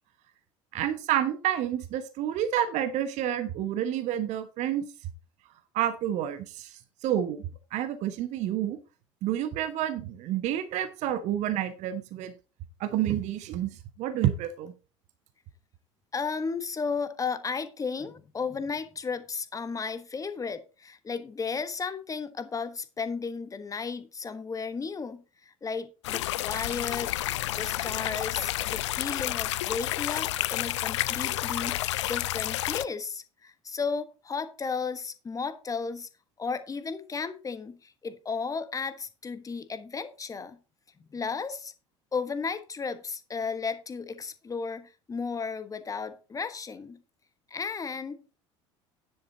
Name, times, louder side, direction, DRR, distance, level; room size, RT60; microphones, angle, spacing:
voice 1, 0.7-4.8 5.7-8.8 9.2-12.3 12.8-14.7, right 11 dB, 50° right, 1.1 m, -29 dB
voice 2, 16.1-36.1 36.4-40.6 41.1-41.7 42.1-47.0 47.5-48.4, left 5 dB, 20° left, 1.2 m, -34 dB
sound 1, 26.0-32.9, left 15 dB, 70° left, 0.4 m, -30 dB
10.0 x 7.8 x 4.0 m
figure-of-eight pair, 65°, 16 cm